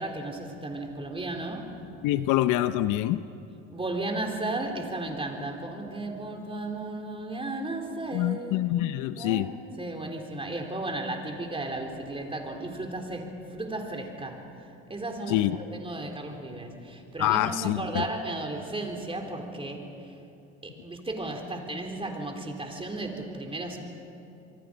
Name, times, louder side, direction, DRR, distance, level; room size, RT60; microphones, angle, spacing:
voice 1, 0.0-1.8 3.7-8.7 9.2-9.5 9.8-20.2 20.6-23.8, right 2 dB, 15° right, 3 dB, 3.9 m, -34 dB
voice 2, 2.0-3.2 8.1-9.5 15.3-15.6 17.2-18.0, left 14 dB, 60° left, 13 dB, 0.8 m, -25 dB
27.0 x 23.5 x 5.2 m, 2.7 s
supercardioid pair, 85°, 35 cm